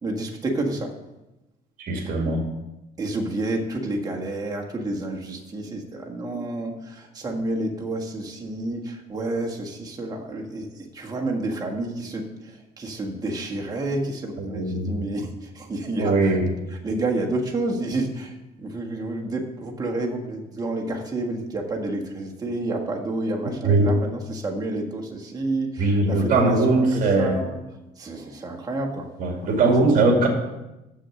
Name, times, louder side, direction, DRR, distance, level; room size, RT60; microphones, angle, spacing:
voice 1, 0.0-0.9 2.1-2.2 3.0-16.4 16.7-27.6 28.0-29.1, right 2 dB, 20° right, 0 dB, 1.6 m, -29 dB
voice 2, 1.8-2.4 14.5-14.9 16.0-16.5 23.6-23.9 25.8-27.4 29.2-30.3, right 2 dB, 55° right, 0 dB, 2.2 m, -20 dB
7.1 x 6.4 x 6.4 m, 0.98 s
cardioid pair, 110°, 17 cm